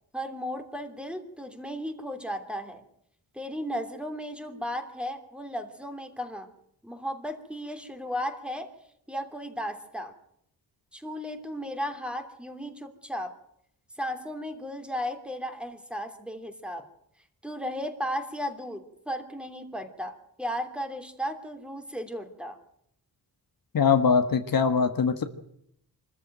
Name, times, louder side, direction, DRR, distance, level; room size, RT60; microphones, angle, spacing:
voice 1, 0.1-2.8 3.3-6.5 6.8-8.7 9.1-10.1 10.9-13.3 14.0-16.9 17.4-22.6, equal, 5° right, 6 dB, 3.0 m, -35 dB
voice 2, 23.7-25.2, left 6 dB, 65° left, 8 dB, 1.7 m, -22 dB
24.5 x 14.0 x 9.1 m, 0.74 s
wide cardioid pair, 95°, 37 cm